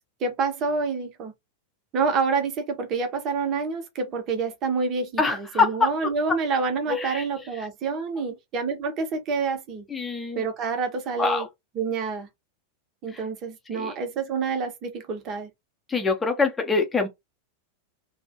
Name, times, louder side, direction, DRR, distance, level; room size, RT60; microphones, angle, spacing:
voice 1, 0.2-1.3 1.9-9.9 10.4-11.5 11.8-12.3 13.0-15.5, right 4 dB, 35° right, 0.8 m, -27 dB
voice 2, 5.2-6.1 6.9-7.3 7.5-7.7 9.9-10.4 11.2-11.5 13.1-13.2 13.7-13.9 15.9-17.1, left 4 dB, 15° left, 0.7 m, -25 dB
2.5 x 2.1 x 2.6 m
figure-of-eight pair, 90°, 0 cm